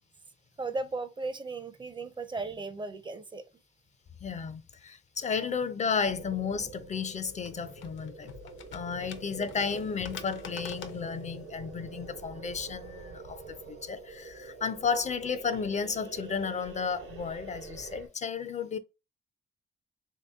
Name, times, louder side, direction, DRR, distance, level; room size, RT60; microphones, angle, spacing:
voice 1, 0.6-3.4 9.0-9.7 13.5-13.6, right 3 dB, 25° right, 0.5 m, -37 dB
voice 2, 4.2-8.3 8.7-18.8, left 6 dB, 35° left, 0.4 m, -33 dB
sound 1, 6.0-18.1, right 3 dB, 80° right, 0.9 m, -46 dB
sound 2, 6.8-12.2, left 7 dB, 75° left, 0.7 m, -48 dB
3.4 x 2.8 x 3.4 m
cardioid pair, 90°, 20 cm